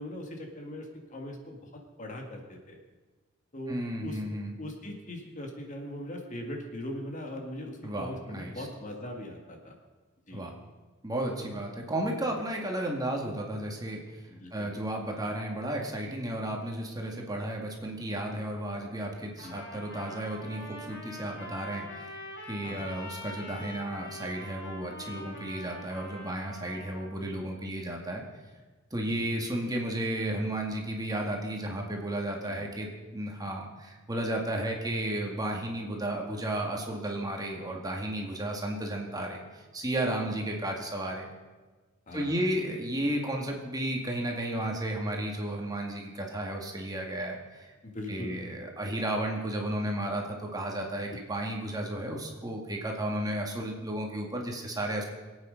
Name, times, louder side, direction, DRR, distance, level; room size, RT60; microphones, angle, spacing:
voice 1, 0.0-2.8 3.5-4.2 4.6-9.8 10.3-10.5 11.4-11.6 14.3-14.8 19.4-19.6 22.6-22.9 27.2-27.5 28.9-29.3 32.4-32.7 37.7-37.8 42.1-42.4 47.8-48.4, left 1 dB, 40° left, 2 dB, 1.9 m, -41 dB
voice 2, 3.7-4.5 7.8-8.7 10.3-10.5 11.0-14.0 14.5-22.2 22.5-28.2 28.9-39.4 39.7-41.3 42.1-47.7 48.1-55.0, right 1 dB, 20° right, 0 dB, 2.1 m, -33 dB
Trumpet, 19.4-27.1, left 1 dB, 60° left, 4.1 m, -44 dB
23.0 x 8.8 x 5.2 m, 1.3 s
head